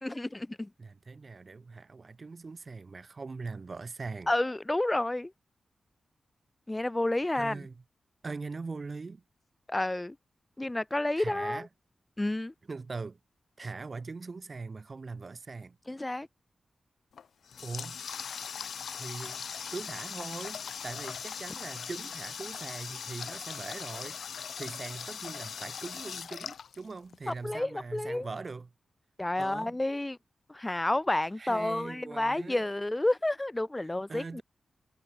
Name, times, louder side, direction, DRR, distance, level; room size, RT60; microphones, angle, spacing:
voice 1, 0.0-0.7 4.3-5.3 6.7-7.6 9.7-10.2 10.6-11.7 12.2-12.5 15.9-16.3 27.3-28.3 29.2-30.2 30.5-34.4, left 1 dB, 20° left, 2.6 m, -30 dB
voice 2, 0.8-4.3 7.3-7.8 8.2-9.2 11.2-11.7 12.7-13.2 13.6-15.8 17.6-18.0 18.9-24.2 24.6-28.7 29.4-29.8 31.4-32.7 34.1-34.4, right 4 dB, 50° right, 3.3 m, -41 dB
Water tap faucet, 17.1-27.3, left 7 dB, 80° left, 1.9 m, -40 dB
cardioid pair, 45°, 0 cm